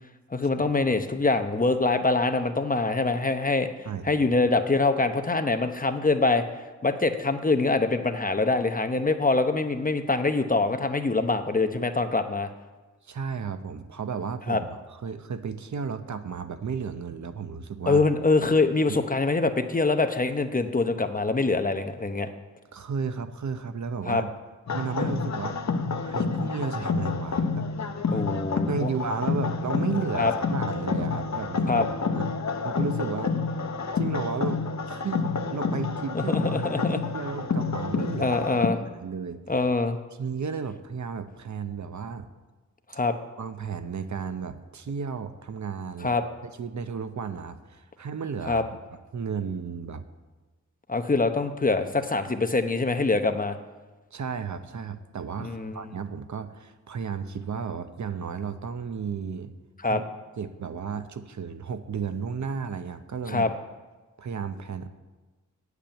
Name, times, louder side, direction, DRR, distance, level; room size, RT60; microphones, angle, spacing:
voice 1, 0.3-3.7 4.0-6.4 6.8-12.5 14.5-14.6 17.9-22.3 24.1-24.2 28.1-28.9 30.2-30.3 31.7-31.9 36.1-37.0 38.2-38.8 39.5-40.0 42.9-43.1 46.0-46.2 48.5-48.6 50.9-53.6 55.4-55.9 59.8-60.0 63.3-63.5, left 3 dB, 25° left, 7 dB, 0.8 m, -24 dB
voice 2, 3.9-4.2 13.0-18.1 18.9-19.0 22.7-24.3 24.7-25.6 26.0-27.7 28.5-31.9 32.1-32.3 32.6-33.3 33.9-36.6 36.9-38.3 38.8-39.4 40.2-42.3 43.4-46.1 46.4-48.8 49.1-50.0 54.1-59.5 59.9-60.0 60.4-63.5 64.2-64.9, right 6 dB, 65° right, 10 dB, 0.8 m, -33 dB
sound 1, 24.7-38.7, left 4 dB, 60° left, 1.0 m, -28 dB
8.8 x 8.3 x 8.8 m, 1.2 s
wide cardioid pair, 110°, 31 cm